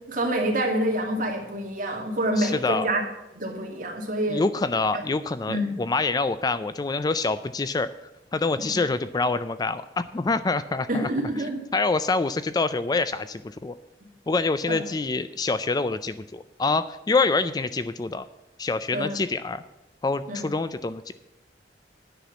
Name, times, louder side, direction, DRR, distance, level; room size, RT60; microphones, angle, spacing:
voice 1, 0.1-3.0 3.3-4.5 4.9-5.0 5.5-5.7 8.6-8.8 10.9-11.7 14.7-14.8 18.9-19.2 20.3-20.5, right 1 dB, 50° right, 0 dB, 2.3 m, -27 dB
voice 2, 2.4-2.9 4.3-7.9 8.3-11.1 11.7-13.8 14.3-18.3 18.6-19.6 20.0-21.1, left 3 dB, 20° left, 13 dB, 0.3 m, -26 dB
10.0 x 5.9 x 8.0 m, 0.95 s
head